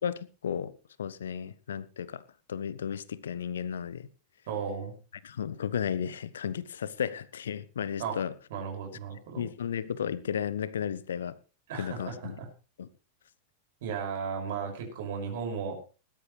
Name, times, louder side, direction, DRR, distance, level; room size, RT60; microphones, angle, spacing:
voice 1, 0.0-0.7 1.0-4.1 5.2-8.3 9.4-11.4 11.7-12.4 12.8-12.9, left 8 dB, 65° left, 0.7 m, -34 dB
voice 2, 4.5-4.9 8.0-8.2 8.5-9.4 11.7-12.5 13.8-15.8, right 6 dB, 55° right, 6.2 m, -35 dB
19.5 x 12.5 x 3.3 m
figure-of-eight pair, 90°, 0 cm